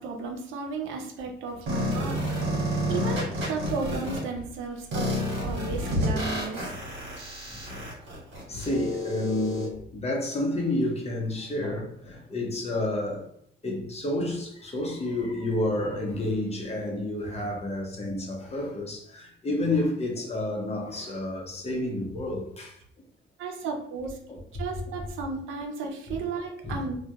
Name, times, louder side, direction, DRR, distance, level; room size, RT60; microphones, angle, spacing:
voice 1, 0.0-2.5 2.9-6.6 23.4-24.2 24.6-27.0, right 4 dB, 90° right, 0.5 m, -34 dB
sound 1, 1.7-4.2 4.9-9.7, equal, 75° right, 1.1 m, -30 dB
voice 2, 7.5-7.9 8.5-13.3 13.6-22.7 24.3-24.4 26.1-26.2 26.6-26.8, left 1 dB, 30° left, 0.7 m, -30 dB
2.2 x 2.1 x 2.7 m
cardioid pair, 90°, 20 cm